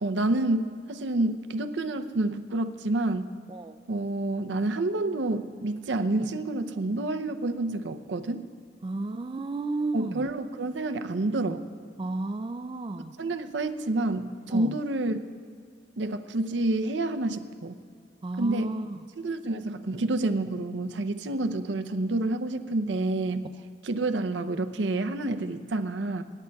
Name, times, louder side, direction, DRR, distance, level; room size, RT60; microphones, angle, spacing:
voice 1, 0.0-3.3 3.9-8.4 9.9-11.6 13.2-15.2 16.0-17.8 18.4-18.8 19.2-23.5 23.8-26.2, right 2 dB, 85° right, 9 dB, 0.6 m, -28 dB
voice 2, 8.8-10.2 12.0-13.1 14.5-14.7 18.2-19.0, right 2 dB, 30° right, 9 dB, 0.3 m, -32 dB
26.5 x 11.0 x 2.3 m, 2.1 s
head